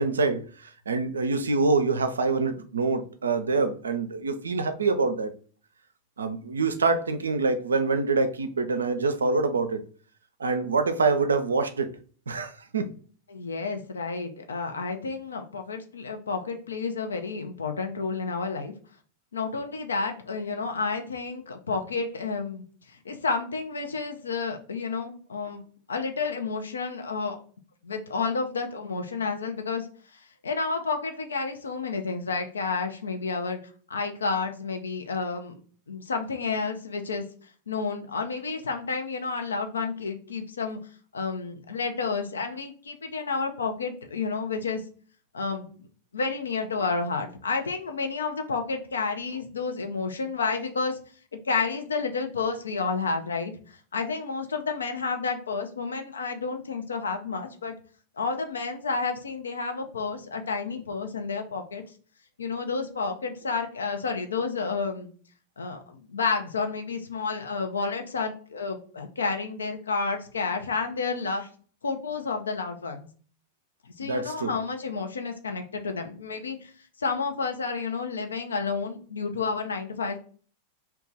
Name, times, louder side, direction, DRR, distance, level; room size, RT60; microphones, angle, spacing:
voice 1, 0.0-5.3 6.2-9.8 10.4-11.9 12.3-12.9 74.0-74.5, right 4 dB, 70° right, 0.4 m, -25 dB
voice 2, 13.3-18.7 19.3-25.6 25.9-27.4 27.8-29.9 30.1-33.6 33.9-35.6 35.9-37.2 37.7-40.8 41.1-44.8 45.3-45.9 46.1-51.0 51.4-53.5 53.9-57.7 58.2-61.8 62.4-65.1 65.6-71.5 71.8-73.1 73.8-76.7 77.0-80.2, left 4 dB, 70° left, 0.5 m, -30 dB
3.0 x 2.3 x 3.7 m
figure-of-eight pair, 90°, 0 cm